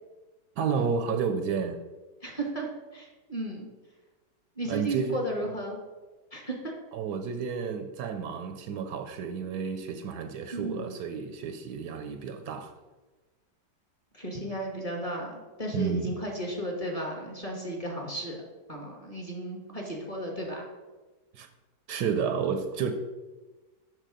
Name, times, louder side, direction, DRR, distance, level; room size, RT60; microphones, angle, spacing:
voice 1, 0.6-1.8 4.7-5.2 6.9-12.7 15.7-16.2 21.3-21.5 21.9-22.9, right 6 dB, 75° right, 7 dB, 1.1 m, -31 dB
voice 2, 2.2-2.7 2.9-3.7 4.6-5.8 6.3-6.7 10.5-11.0 14.1-18.4 18.7-20.6, right 1 dB, 25° left, 0 dB, 1.2 m, -34 dB
6.6 x 6.1 x 4.9 m, 1.2 s
omnidirectional pair, 1.9 m